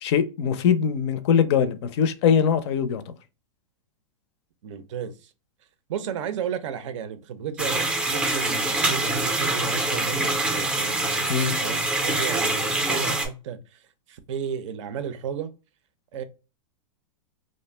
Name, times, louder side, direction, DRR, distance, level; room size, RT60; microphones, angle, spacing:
voice 1, 0.0-3.1 11.3-11.6, left 7 dB, 55° left, 0.4 m, -22 dB
voice 2, 4.6-5.3 5.9-13.8 14.1-15.5 16.1-16.2, right 8 dB, 65° right, 0.5 m, -33 dB
sound 1, 7.6-13.3, right 2 dB, 5° right, 0.4 m, -25 dB
2.5 x 2.1 x 3.1 m
hypercardioid pair, 135°, 17 cm